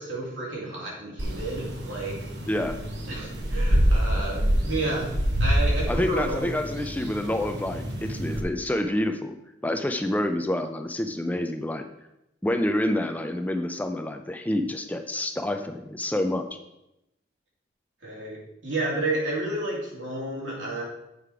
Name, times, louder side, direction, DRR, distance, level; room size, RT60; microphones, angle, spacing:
voice 1, 0.0-2.2 3.1-5.1 5.4-6.6 18.0-20.8, right 2 dB, 85° right, -4 dB, 3.0 m, -31 dB
sound 1, 1.2-8.4, equal, 65° right, 1.2 m, -26 dB
voice 2, 5.9-9.4 9.6-11.9 12.4-16.5, left 1 dB, 10° left, 7 dB, 0.4 m, -28 dB
7.6 x 5.0 x 4.7 m, 0.88 s
head